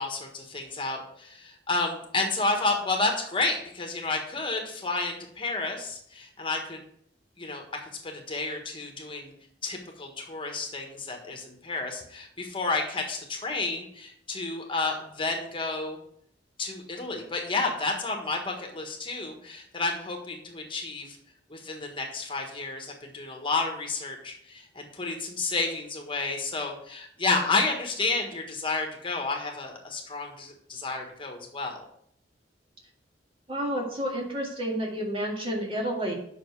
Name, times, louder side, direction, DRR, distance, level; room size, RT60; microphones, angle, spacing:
voice 1, 0.0-6.8 7.4-9.3 9.6-16.0 16.6-21.2 21.5-31.8, left 3 dB, 30° left, 2 dB, 1.4 m, -31 dB
voice 2, 33.5-36.1, equal, 30° right, -1 dB, 2.1 m, -30 dB
7.9 x 6.1 x 4.7 m, 0.67 s
head